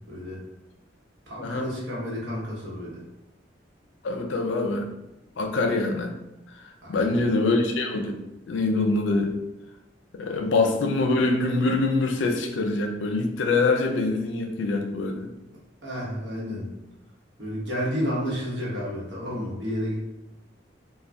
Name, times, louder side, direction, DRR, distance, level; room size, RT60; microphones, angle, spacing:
voice 1, 0.1-0.4 1.3-3.0 6.8-7.2 10.4-10.5 15.8-16.7 17.4-19.9, equal, 70° right, -5 dB, 0.9 m, -31 dB
voice 2, 4.0-4.9 5.4-6.1 6.5-6.6 6.9-8.2 8.5-9.4 10.1-15.3, left 3 dB, 85° left, 4 dB, 0.4 m, -24 dB
2.5 x 2.1 x 3.3 m, 0.94 s
head